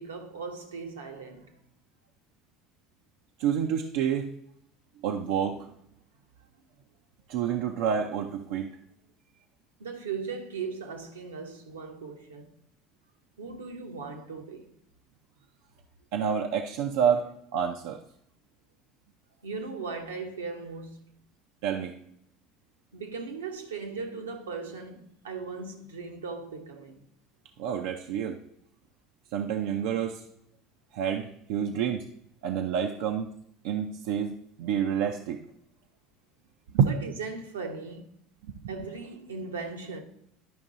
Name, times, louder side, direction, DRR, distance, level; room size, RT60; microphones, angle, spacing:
voice 1, 0.0-1.5 9.8-12.5 13.4-14.7 19.4-21.0 22.9-27.0 36.8-38.0 38.7-40.0, right 4 dB, 85° right, 1.0 m, -38 dB
voice 2, 3.4-4.3 5.0-5.7 7.3-8.7 16.1-17.3 17.5-18.0 21.6-21.9 27.6-28.4 29.3-30.2 30.9-32.1 32.4-33.4 33.6-35.4 36.7-36.9 38.4-38.7, right 8 dB, 65° right, 0.6 m, -28 dB
11.0 x 5.2 x 3.9 m
hypercardioid pair, 70°, 0 cm